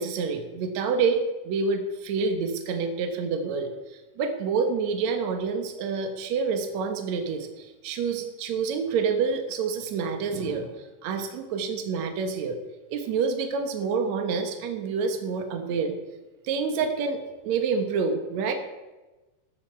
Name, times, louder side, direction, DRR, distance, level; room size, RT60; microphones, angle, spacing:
voice 1, 0.0-3.7 4.2-10.7 11.0-12.6 12.9-16.0 16.4-18.5, right 5 dB, 65° right, 6 dB, 2.5 m, -27 dB
14.0 x 13.0 x 4.5 m, 1.1 s
omnidirectional pair, 3.7 m